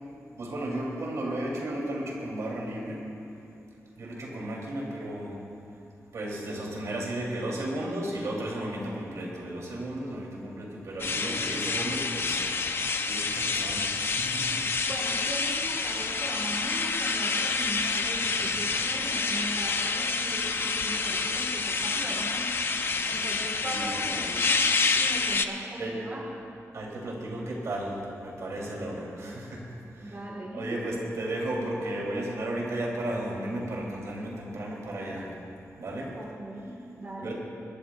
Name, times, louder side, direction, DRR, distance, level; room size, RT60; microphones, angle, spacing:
voice 1, 0.3-3.0 4.0-5.4 6.1-14.6 18.2-18.6 22.9-24.1 25.8-26.0 26.7-29.7 29.9-30.2 30.5-35.3 35.8-36.1 37.2-37.3, right 1 dB, 70° right, -3 dB, 3.3 m, -34 dB
sound 1, 11.0-25.5, left 4 dB, 45° left, 0.6 m, -28 dB
voice 2, 14.8-22.7 23.0-24.6 24.9-26.3 28.7-28.9 29.2-29.3 30.0-30.8 36.1-37.3, right 1 dB, 35° right, -3 dB, 1.7 m, -39 dB
25.0 x 12.5 x 2.5 m, 2.6 s
wide cardioid pair, 150°, 6 cm